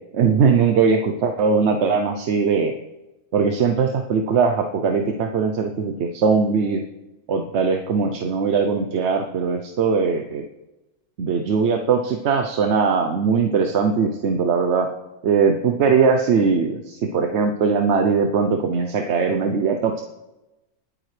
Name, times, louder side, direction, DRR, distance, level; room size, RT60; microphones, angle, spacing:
voice 1, 0.1-2.7 3.3-6.8 7.3-10.5 11.2-14.9 15.2-20.0, right 5 dB, 60° right, 5 dB, 1.0 m, -20 dB
20.0 x 8.7 x 3.3 m, 0.99 s
omnidirectional pair, 1.4 m